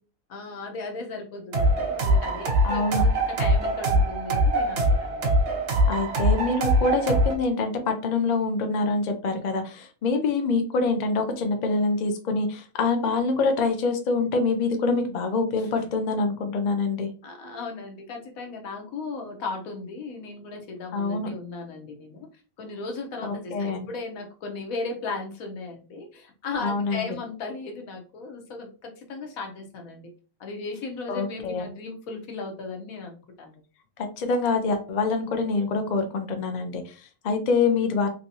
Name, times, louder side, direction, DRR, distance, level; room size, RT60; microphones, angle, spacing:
voice 1, 0.3-5.2 5.9-6.0 15.6-15.9 17.2-22.3 22.6-30.1 30.4-33.5, left 3 dB, 80° left, 3 dB, 1.3 m, -36 dB
sound 1, 1.5-7.3, right 1 dB, 60° right, 0.9 m, -22 dB
voice 2, 2.6-3.0 5.9-17.1 20.9-21.3 23.2-23.9 26.6-27.1 31.1-31.7 34.2-38.1, left 3 dB, 55° left, 5 dB, 0.5 m, -25 dB
3.3 x 2.8 x 2.7 m, 0.36 s
omnidirectional pair, 1.5 m